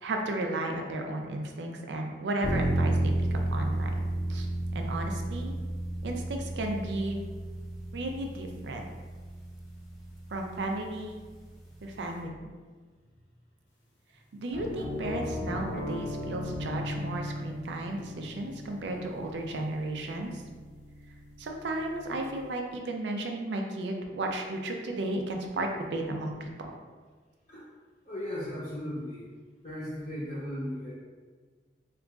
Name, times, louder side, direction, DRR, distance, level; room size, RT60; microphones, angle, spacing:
voice 1, 0.0-3.9 4.3-4.5 4.7-5.6 6.0-7.2 7.9-8.9 10.3-11.2 11.8-12.4 14.3-20.4 21.4-26.7, right 2 dB, 75° right, 2 dB, 0.5 m, -34 dB
sound 1, 2.4-12.2, right 1 dB, ahead, 0.6 m, -32 dB
sound 2, 14.5-22.4, left 1 dB, 90° left, 0.7 m, -39 dB
voice 2, 28.0-29.3 29.6-30.9, left 1 dB, 40° left, -9 dB, 0.7 m, -36 dB
2.9 x 2.4 x 3.5 m, 1.4 s
head